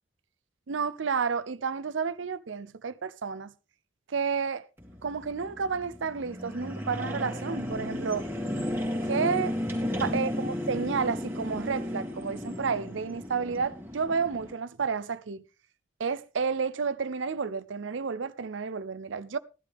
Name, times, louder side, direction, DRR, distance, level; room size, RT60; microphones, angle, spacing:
voice 1, 0.7-3.5 4.1-4.6 5.0-8.3 9.0-9.6 10.0-15.4 16.0-19.4, right 5 dB, 75° right, 0.6 m, -31 dB
sound 1, 4.8-14.5, left 1 dB, 10° right, 2.4 m, -34 dB
15.5 x 11.5 x 3.5 m
head